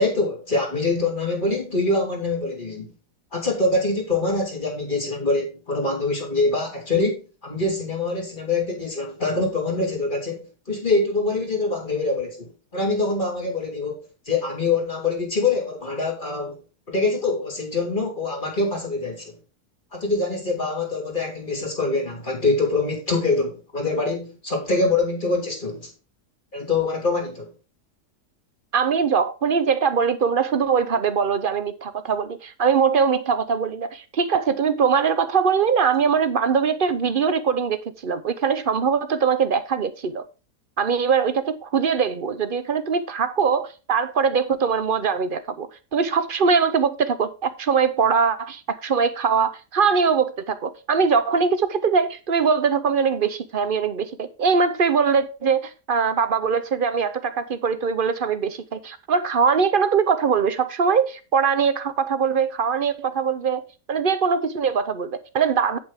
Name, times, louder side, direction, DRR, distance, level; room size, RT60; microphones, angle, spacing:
voice 1, 0.0-2.9 3.3-16.6 16.9-19.3 19.9-25.9 26.5-27.5, left 3 dB, 30° left, 3.2 m, -24 dB
voice 2, 28.7-40.2 40.8-63.6 63.9-65.8, right 6 dB, 45° right, 0.8 m, -22 dB
8.8 x 8.4 x 3.6 m
omnidirectional pair, 1.7 m